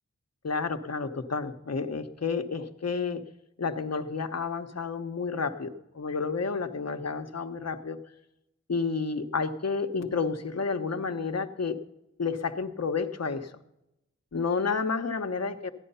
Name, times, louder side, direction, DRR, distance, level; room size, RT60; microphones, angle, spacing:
voice 1, 0.4-3.2 3.6-8.0 8.7-11.7 12.2-13.5 14.3-15.7, left 4 dB, 60° left, 7 dB, 1.0 m, -30 dB
14.5 x 10.0 x 5.6 m, 0.89 s
cardioid pair, 45°, 29 cm